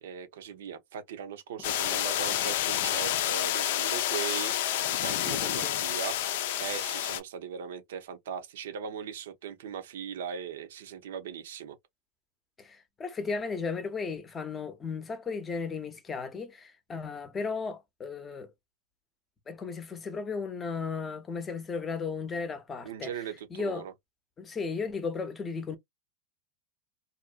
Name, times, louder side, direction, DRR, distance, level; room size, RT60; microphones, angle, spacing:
voice 1, 0.0-6.2 6.6-11.8 22.8-23.9, right 8 dB, 80° right, 0.7 m, -39 dB
sound 1, 1.6-7.2, left 12 dB, 70° left, 0.4 m, -29 dB
voice 2, 5.3-5.8 12.6-18.5 19.5-23.1 23.5-23.8 24.4-25.8, left 5 dB, 20° left, 0.6 m, -35 dB
2.5 x 2.1 x 2.4 m
supercardioid pair, 125°, 0 cm